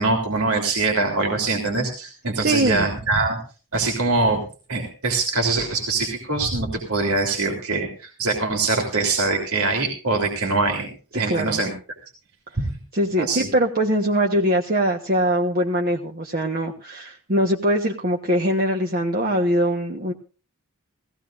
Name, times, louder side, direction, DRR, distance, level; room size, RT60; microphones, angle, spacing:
voice 1, 0.0-3.4 3.7-4.4 4.7-11.7 12.6-12.7 13.2-13.5, right 3 dB, 85° right, 2 dB, 3.2 m, -23 dB
voice 2, 2.4-2.8 11.3-11.6 12.9-20.1, equal, 45° right, 1 dB, 1.2 m, -22 dB
18.0 x 16.0 x 2.5 m, 0.35 s
head